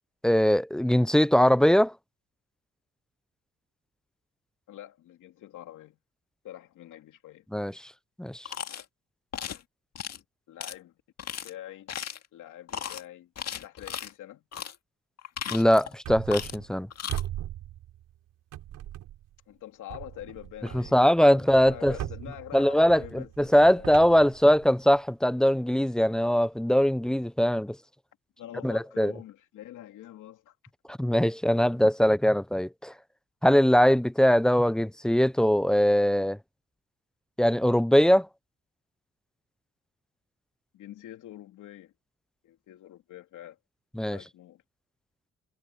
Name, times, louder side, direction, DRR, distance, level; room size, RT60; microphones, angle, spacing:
voice 1, 0.2-1.9 7.5-7.7 8.2-8.5 15.5-16.9 20.7-22.0 22.5-27.8 28.6-29.1 30.9-32.9 33.4-36.4 37.4-38.3 44.0-44.2, equal, ahead, 0.4 m, -21 dB
voice 2, 4.7-6.0 6.4-7.5 10.5-10.9 11.4-11.9 12.3-13.3 13.6-14.4 19.5-20.9 21.3-24.0 28.4-30.5 40.7-41.9 42.4-43.6 44.1-44.6, left 13 dB, 80° left, 2.8 m, -45 dB
sound 1, 8.5-8.8 9.3-9.6 10.0-10.2 10.6-10.7 11.2-11.5 11.9-12.3 12.7-13.0 13.4-14.1 14.5-14.8 15.2-15.9 16.3-16.6 16.9-17.2, left 9 dB, 55° left, 2.1 m, -36 dB
sound 2, 16.0-16.8 17.1-18.2 18.5-19.4 19.9-25.0, right 13 dB, 85° right, 4.9 m, -40 dB
cardioid pair, 90°, 30 cm